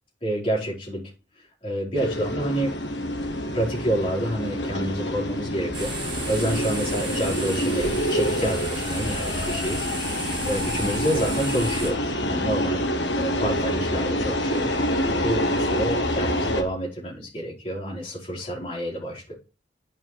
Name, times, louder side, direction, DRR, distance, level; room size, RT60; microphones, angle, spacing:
voice 1, 0.2-1.0 1.6-2.7 3.5-9.8 10.4-12.8 13.2-14.7 15.0-19.3, right 1 dB, 30° left, -5 dB, 4.6 m, -28 dB
sound 1, 1.9-16.6, left 1 dB, 75° left, 1.5 m, -27 dB
sound 2, 5.7-11.9, right 2 dB, 25° right, 3.0 m, -34 dB
8.9 x 5.4 x 4.6 m, 0.32 s
head